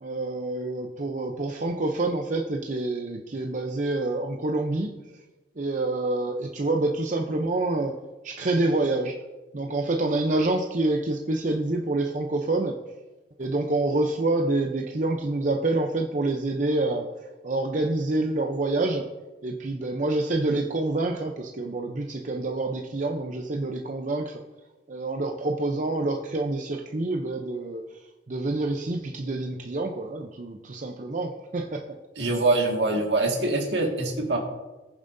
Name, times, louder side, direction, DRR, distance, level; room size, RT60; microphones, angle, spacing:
voice 1, 0.0-4.9 5.6-8.0 8.2-9.2 9.5-12.8 13.4-17.1 17.4-19.1 19.4-24.4 24.9-28.0 28.3-31.8, right 2 dB, 45° right, 2 dB, 0.7 m, -27 dB
voice 2, 32.2-34.4, right 2 dB, 70° right, 1 dB, 1.9 m, -24 dB
19.5 x 7.2 x 2.7 m, 1.2 s
head